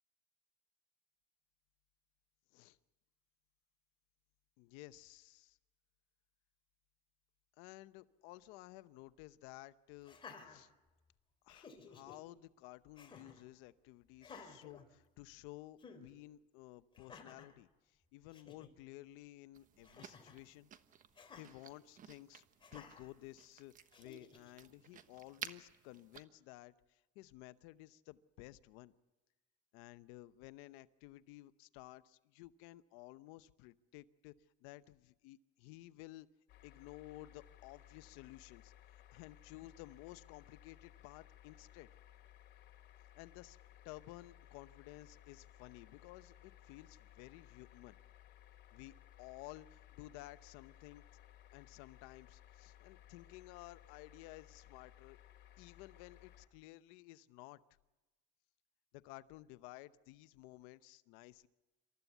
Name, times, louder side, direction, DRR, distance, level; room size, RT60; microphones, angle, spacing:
voice 1, 4.6-5.6 7.6-10.2 10.4-10.7 11.4-20.7 21.4-22.4 22.7-28.9 29.7-34.3 34.6-36.3 36.6-41.9 43.1-43.6 43.8-48.0 48.7-51.2 51.5-55.2 55.6-57.6 58.9-61.5, left 17 dB, 85° left, 14 dB, 0.8 m, -54 dB
Laughter, 10.0-11.1 11.5-12.2 12.9-13.4 14.2-15.4 15.8-16.0 16.9-17.5 18.0-18.1 18.3-18.7 19.8-20.4 21.1-21.5 22.6-23.1 23.9-24.5, left 5 dB, 25° left, 3.3 m, -55 dB
sound 1, 19.5-26.2, right 9 dB, 40° right, 1.2 m, -54 dB
sound 2, 36.5-56.5, left 12 dB, 55° left, 2.8 m, -61 dB
27.5 x 14.0 x 8.1 m, 1.1 s
cardioid pair, 130°, 21 cm